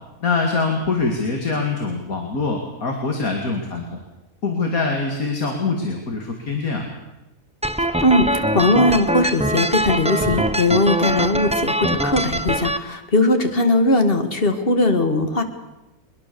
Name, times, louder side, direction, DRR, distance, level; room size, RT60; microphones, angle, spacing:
voice 1, 0.2-4.0 4.4-6.9, left 3 dB, 65° left, 2 dB, 2.7 m, -24 dB
sound 1, 7.6-12.8, right 1 dB, 10° right, 0.4 m, -22 dB
voice 2, 8.0-15.4, left 2 dB, 40° left, 7 dB, 2.1 m, -19 dB
22.0 x 21.5 x 7.0 m, 0.99 s
omnidirectional pair, 1.6 m